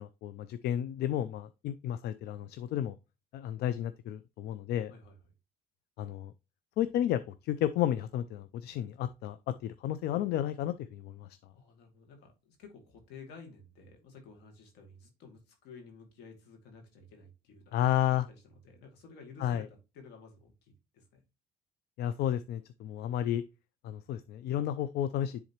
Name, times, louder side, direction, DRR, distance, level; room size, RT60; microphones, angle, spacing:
voice 1, 0.0-3.0 3.3-4.9 6.0-6.3 6.8-11.3 17.7-18.3 19.4-19.6 22.0-23.4 23.8-25.4, left 11 dB, 75° left, 0.5 m, -32 dB
voice 2, 11.5-21.2, left 4 dB, 90° left, 2.4 m, -53 dB
10.5 x 3.8 x 2.9 m
cardioid pair, 110°, 17 cm